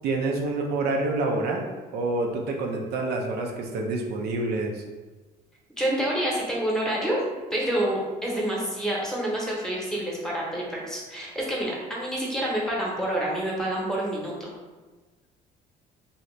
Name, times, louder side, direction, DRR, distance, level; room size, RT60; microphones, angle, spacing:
voice 1, 0.0-1.7 1.9-4.8, right 2 dB, 70° right, 1 dB, 0.5 m, -27 dB
voice 2, 5.8-7.2 7.5-14.5, right 1 dB, 5° left, -4 dB, 0.9 m, -28 dB
2.7 x 2.7 x 3.2 m, 1.3 s
cardioid pair, 110°, 17 cm